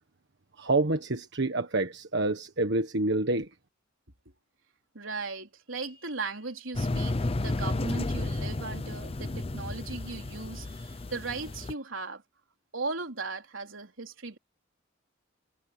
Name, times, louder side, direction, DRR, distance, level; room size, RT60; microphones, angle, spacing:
voice 1, 0.6-3.5, right 2 dB, 60° right, 1.5 m, -27 dB
voice 2, 4.9-12.2 12.7-14.4, right 3 dB, 75° right, 3.8 m, -37 dB
sound 1, 6.7-11.7, left 2 dB, 30° left, 0.6 m, -32 dB
head